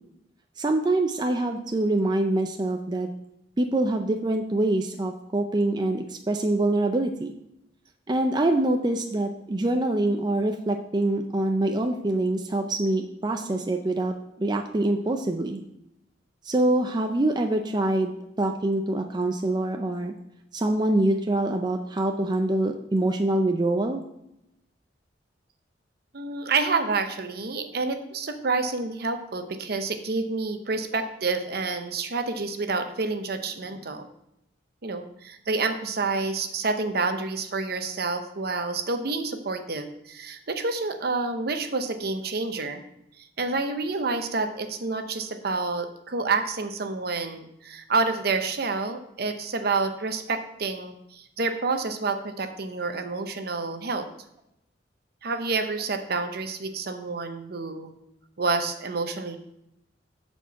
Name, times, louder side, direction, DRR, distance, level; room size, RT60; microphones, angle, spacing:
voice 1, 0.6-3.1 3.6-7.3 8.1-15.6 16.4-20.1 20.5-24.0, right 2 dB, 25° right, 4 dB, 0.5 m, -25 dB
voice 2, 26.1-34.1 34.8-42.8 43.4-54.1 55.2-57.9 58.4-59.4, right 3 dB, 55° right, 7 dB, 0.8 m, -28 dB
7.3 x 4.4 x 6.9 m, 0.82 s
head